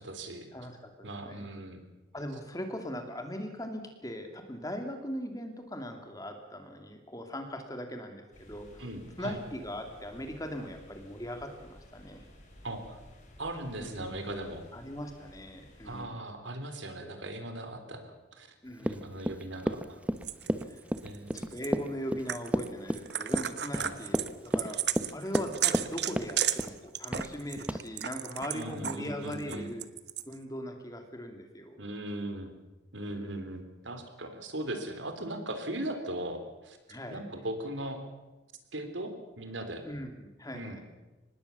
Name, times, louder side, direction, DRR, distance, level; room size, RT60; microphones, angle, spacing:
voice 1, 0.0-0.5 1.0-1.8 8.8-9.4 12.6-13.0 13.4-14.6 15.8-18.5 18.8-20.0 21.0-21.5 23.8-24.0 28.5-29.7 31.8-32.6 32.9-36.8 37.1-38.0 38.7-39.8 40.5-40.8, right 1 dB, 75° right, 7 dB, 3.5 m, -39 dB
voice 2, 0.5-1.5 2.1-8.8 9.2-12.2 13.8-14.2 14.7-16.2 17.0-17.2 18.6-19.3 20.6-20.8 21.3-24.8 25.1-29.9 30.3-31.8 33.1-33.5 36.9-37.2 39.8-40.8, equal, 20° left, 5 dB, 2.8 m, -40 dB
sound 1, 8.3-16.0, left 1 dB, 40° left, 5.4 m, -55 dB
Run, 18.8-25.9 26.2-26.8 27.1-27.3 27.7-27.8, equal, 5° right, 0.9 m, -31 dB
sound 2, 20.2-21.7 22.3-22.7 22.9-29.0 29.3-30.3, right 11 dB, 60° right, 1.1 m, -33 dB
25.0 x 20.0 x 7.1 m, 1.1 s
head